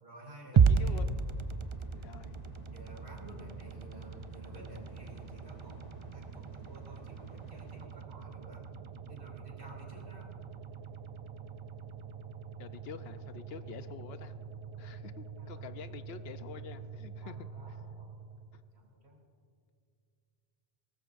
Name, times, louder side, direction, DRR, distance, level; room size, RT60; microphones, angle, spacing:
voice 1, 0.0-1.1 2.7-5.8 6.1-8.6 9.1-10.3 15.4-15.7 17.2-18.3 18.7-19.2, right 1 dB, 85° right, -1 dB, 3.2 m, -52 dB
voice 2, 0.5-1.2 1.9-2.4 12.6-14.3 14.8-17.4 18.5-18.6, left 7 dB, 75° left, 11 dB, 0.9 m, -47 dB
sound 1, 0.6-18.8, right 6 dB, 45° right, 0.4 m, -36 dB
sound 2, 0.8-7.9, left 2 dB, 40° left, 1.2 m, -56 dB
21.0 x 18.5 x 2.5 m, 2.3 s
omnidirectional pair, 1.1 m